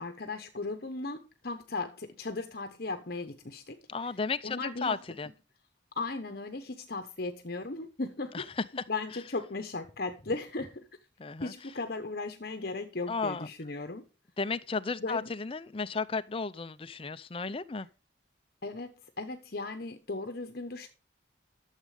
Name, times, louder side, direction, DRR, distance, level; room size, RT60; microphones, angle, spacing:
voice 1, 0.0-3.8 4.0-4.2 4.4-5.0 6.0-8.5 8.9-10.9 11.4-14.0 15.0-15.3 18.6-20.9, left 3 dB, 50° left, 1.0 m, -37 dB
voice 2, 3.9-5.3 8.3-8.6 11.2-11.5 13.1-13.5 14.4-17.9, left 4 dB, 30° left, 0.5 m, -34 dB
12.5 x 7.5 x 4.9 m
head